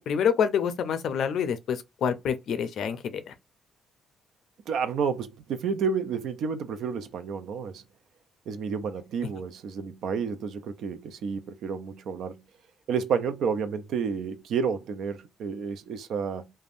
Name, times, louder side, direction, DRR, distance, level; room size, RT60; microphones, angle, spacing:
voice 1, 0.1-3.3, left 7 dB, 70° left, 0.4 m, -27 dB
voice 2, 4.7-7.8 8.5-12.3 12.9-16.5, right 6 dB, 75° right, 0.4 m, -30 dB
3.3 x 2.1 x 2.5 m
cardioid pair, 90°, 0 cm